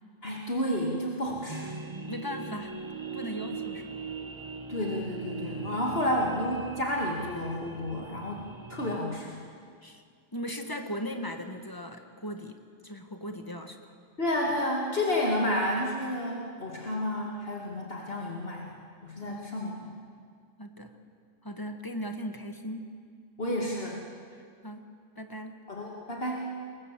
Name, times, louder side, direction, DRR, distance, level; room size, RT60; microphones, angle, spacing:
voice 1, 0.2-1.7 4.7-8.4 8.7-9.4 14.2-18.7 19.0-19.8 23.4-24.0 25.7-26.5, left 1 dB, 50° left, -2 dB, 2.6 m, -30 dB
sound 1, 1.5-9.0, right 5 dB, 25° right, 1.4 m, -40 dB
voice 2, 2.0-2.7 3.1-4.0 9.8-10.0 10.3-13.8 19.2-19.7 20.6-20.9 21.4-22.9 24.6-24.9 25.2-25.5, equal, 15° left, 6 dB, 1.6 m, -38 dB
27.5 x 22.5 x 7.6 m, 2.1 s
omnidirectional pair, 1.3 m